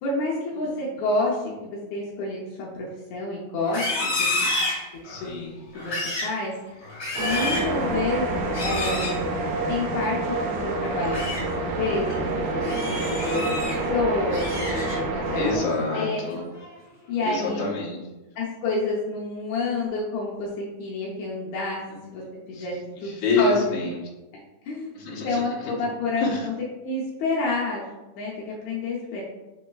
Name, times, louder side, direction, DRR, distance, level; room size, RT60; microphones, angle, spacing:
voice 1, 0.0-4.5 5.2-6.0 6.2-6.5 7.2-9.2 9.7-11.5 11.8-13.5 13.9-15.6 15.9-16.2 17.1-17.7 18.3-20.5 20.8-21.8 22.1-22.2 22.5-22.8 23.0-23.6 24.6-24.9 25.2-25.5 25.8-26.5 26.8-27.9 28.2-29.2, left 3 dB, 80° left, -5 dB, 1.5 m, -29 dB
Livestock farm animals working animals, 3.6-5.3 5.7-6.4 6.8-7.7 8.5-9.2 10.8-11.4 11.9-12.1 12.6-13.8 14.1-15.2 15.6-15.9 16.3-16.8, left 2 dB, 45° left, 1.9 m, -30 dB
voice 2, 5.0-5.6 15.4-16.4 17.2-18.2 22.5-22.7 23.0-23.9 24.9-25.7 26.2-26.5, left 3 dB, 65° left, -4 dB, 1.6 m, -27 dB
sound 1, 7.2-15.6, right 2 dB, 85° right, 1.6 m, -27 dB
6.3 x 3.1 x 2.3 m, 1.1 s
omnidirectional pair, 4.0 m